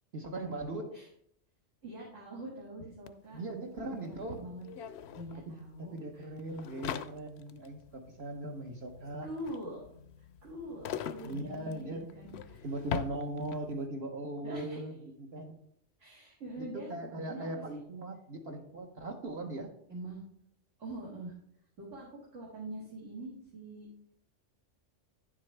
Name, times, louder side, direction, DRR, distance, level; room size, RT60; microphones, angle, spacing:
voice 1, 0.1-0.9 3.3-4.4 5.5-9.3 11.2-12.1 12.6-14.9 15.2-15.5 16.6-19.7, right 2 dB, 60° right, 2 dB, 1.2 m, -39 dB
voice 2, 1.8-3.4 3.8-4.6 5.1-6.3 9.2-9.9 10.4-12.7 14.4-14.8 16.0-17.8 19.9-20.2 20.8-21.3 21.8-23.9, right 1 dB, 85° right, -5 dB, 2.4 m, -44 dB
sound 1, 3.1-3.2 3.3-13.8, left 8 dB, 65° left, 0.8 m, -43 dB
10.0 x 7.5 x 3.3 m, 0.70 s
omnidirectional pair, 1.3 m